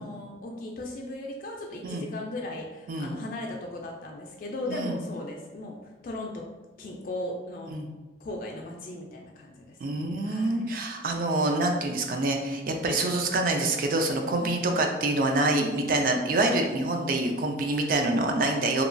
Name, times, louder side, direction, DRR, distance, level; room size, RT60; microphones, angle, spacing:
voice 1, 0.0-5.8 6.0-6.4 6.8-7.7 8.2-10.7 14.4-14.6, left 1 dB, 50° left, 0 dB, 0.3 m, -37 dB
voice 2, 4.7-5.0 7.7-7.9 9.8-18.8, right 2 dB, 50° right, 3 dB, 0.3 m, -26 dB
2.9 x 2.2 x 2.5 m, 1.1 s
head